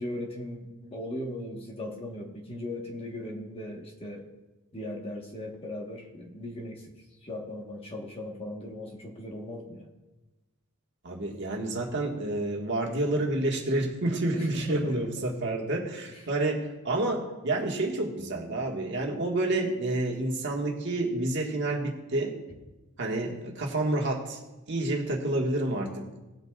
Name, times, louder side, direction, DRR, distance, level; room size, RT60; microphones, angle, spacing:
voice 1, 0.0-4.3 4.7-6.9 7.2-9.9 14.3-15.2 16.1-16.2, left 1 dB, 25° left, 1 dB, 1.3 m, -38 dB
voice 2, 11.0-22.3 23.0-24.4 24.7-26.2, right 2 dB, 55° right, 0 dB, 1.6 m, -29 dB
19.0 x 8.0 x 2.4 m, 1.1 s
head